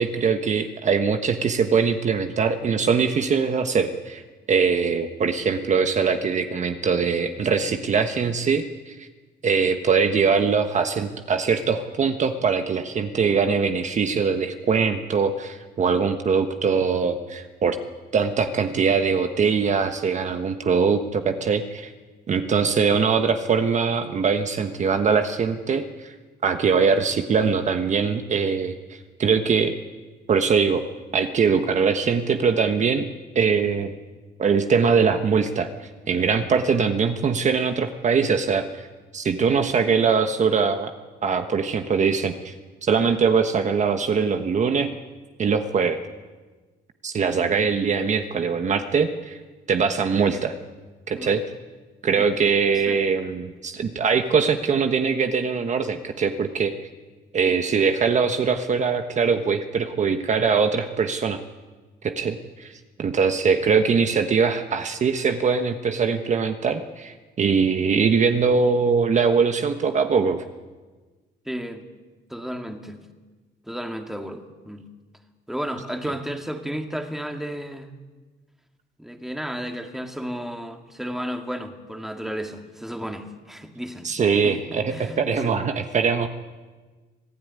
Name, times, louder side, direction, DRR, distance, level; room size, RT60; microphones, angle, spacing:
voice 1, 0.0-4.2 4.5-9.1 9.4-17.8 18.1-21.9 22.3-26.1 26.4-29.7 30.3-30.8 31.1-33.0 33.3-33.9 34.4-38.9 39.1-40.9 41.2-42.5 42.8-44.9 45.4-46.0 47.0-49.4 49.7-50.5 51.1-51.4 52.0-56.7 57.3-61.4 62.0-62.7 63.0-70.4 84.0-86.3, right 5 dB, 40° right, 7 dB, 1.3 m, -22 dB
voice 2, 71.5-71.9 72.3-73.0 73.7-74.8 75.5-77.9 79.0-84.1 84.4-84.6 84.9-85.2 85.4-85.6, equal, ahead, 5 dB, 2.1 m, -33 dB
25.5 x 16.5 x 9.7 m, 1.3 s
cardioid pair, 135°, 19 cm